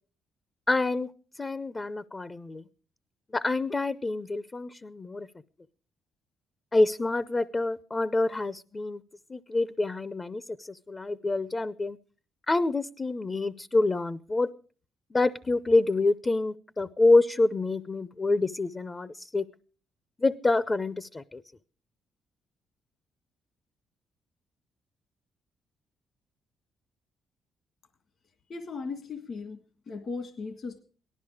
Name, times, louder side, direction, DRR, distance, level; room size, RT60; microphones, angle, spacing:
voice 1, 0.7-1.1 1.4-2.6 3.3-5.3 6.7-9.0 9.3-12.0 12.5-14.5 15.1-19.4 20.2-21.4, left 2 dB, 25° left, 16 dB, 0.6 m, -27 dB
voice 2, 28.5-30.8, left 4 dB, 55° left, 8 dB, 1.7 m, -37 dB
18.0 x 13.0 x 4.9 m, 0.41 s
cardioid pair, 90°, 0 cm